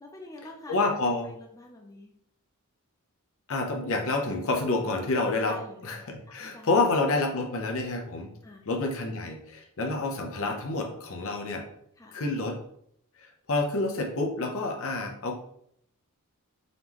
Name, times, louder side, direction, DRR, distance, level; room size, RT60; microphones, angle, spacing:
voice 1, 0.0-0.8 1.2-2.1 5.4-6.8 8.4-8.7 12.0-12.2, left 1 dB, 15° left, 0 dB, 0.5 m, -46 dB
voice 2, 0.7-1.3 3.5-5.6 5.8-8.3 8.7-11.7 12.1-12.6 13.2-15.4, left 3 dB, 65° left, 3 dB, 0.8 m, -28 dB
3.9 x 3.5 x 3.0 m, 0.71 s
head